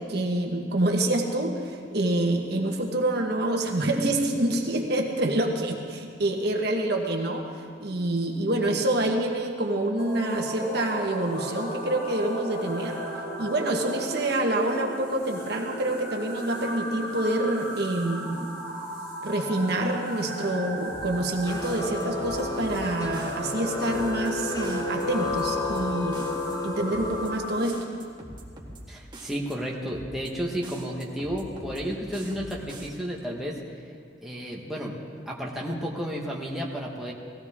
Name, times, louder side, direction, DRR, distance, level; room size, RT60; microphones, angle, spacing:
voice 1, 0.0-7.5 7.8-13.0 13.4-18.5 19.2-26.4 26.6-27.8, right 1 dB, 55° right, 2 dB, 1.3 m, -27 dB
sound 1, 10.0-27.6, equal, 50° left, 2.0 m, -36 dB
sound 2, 20.9-21.3 21.6-22.8 23.1-23.5 23.9-24.3 24.6-25.8 26.1-26.5 26.9-27.3 27.6-28.8 29.1-29.5 29.9-30.3 30.6-31.8 32.1-32.9, right 1 dB, 25° right, 1.7 m, -43 dB
sound 3, 21.5-27.4, left 3 dB, 20° left, 0.5 m, -32 dB
voice 2, 28.9-33.6 34.2-34.9 35.3-37.1, equal, ahead, -4 dB, 1.3 m, -32 dB
19.0 x 15.5 x 3.6 m, 2.2 s
head